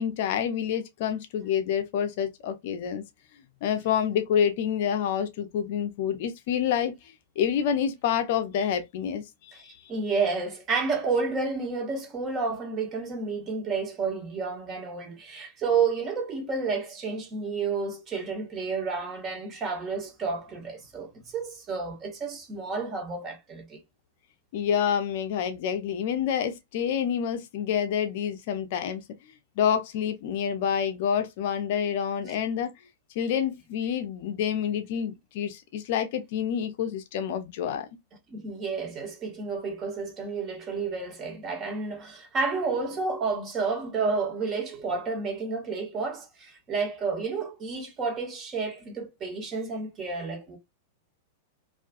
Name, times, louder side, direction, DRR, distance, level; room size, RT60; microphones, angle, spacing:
voice 1, 0.0-3.0 3.6-7.0 7.4-9.8 24.5-29.0 29.6-32.7 33.2-37.9, left 8 dB, 50° left, 0.5 m, -28 dB
voice 2, 9.9-23.8 38.3-50.6, right 4 dB, 30° right, 0.9 m, -30 dB
2.4 x 2.3 x 2.3 m
figure-of-eight pair, 95°, 0 cm